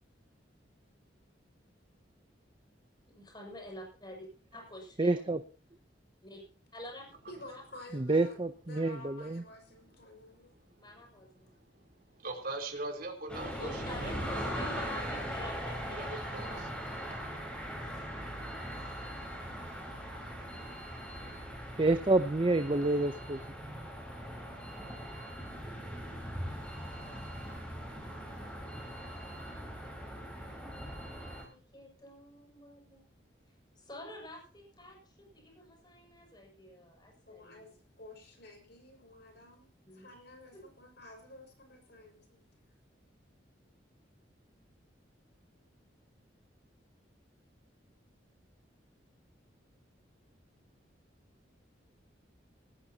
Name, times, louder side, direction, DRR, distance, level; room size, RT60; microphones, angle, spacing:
voice 1, 3.1-4.3 4.5-5.2 6.2-6.4 6.7-7.1 10.8-11.9 13.6-16.5 17.8-18.1 18.7-19.1 31.5-33.0 33.7-37.7 39.8-40.1 40.5-40.6, left 1 dB, 25° left, 1 dB, 6.5 m, -48 dB
voice 2, 5.0-5.4 7.9-9.4 21.8-23.9, right 2 dB, 30° right, 10 dB, 0.7 m, -28 dB
voice 3, 7.3-8.3 8.6-10.5 37.3-39.7 39.9-42.5, left 2 dB, 60° left, 3 dB, 5.8 m, -52 dB
voice 4, 12.2-14.7 15.9-16.7, right 2 dB, 55° right, 1 dB, 3.7 m, -41 dB
sound 1, 13.3-31.4, equal, 5° left, 4.6 m, -40 dB
18.5 x 16.0 x 2.9 m, 0.39 s
head